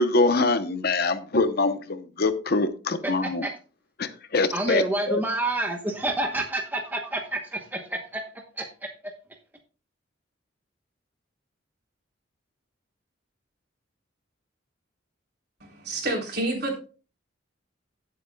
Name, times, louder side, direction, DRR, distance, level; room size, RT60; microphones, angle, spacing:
voice 1, 0.0-3.5 4.3-5.2, left 3 dB, 55° left, 0.9 m, -24 dB
voice 2, 3.0-3.5 4.5-8.2 8.6-8.7, right 1 dB, 10° right, 1.0 m, -28 dB
voice 3, 15.6-16.8, right 1 dB, 55° right, 3.6 m, -29 dB
16.5 x 7.8 x 2.3 m
head